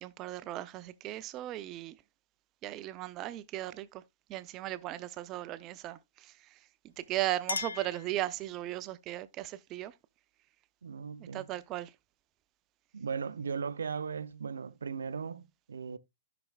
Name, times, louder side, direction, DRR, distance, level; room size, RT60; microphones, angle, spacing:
voice 1, 0.0-2.0 2.6-4.0 4.3-6.6 6.8-9.9 11.2-11.9, right 15 dB, 30° right, 0.6 m, -37 dB
Chink clink, 6.9-8.8, left 5 dB, 75° left, 0.4 m, -40 dB
voice 2, 10.8-11.5 12.9-16.0, right 6 dB, 65° right, 0.6 m, -37 dB
14.5 x 6.0 x 2.3 m
figure-of-eight pair, 115°, 0 cm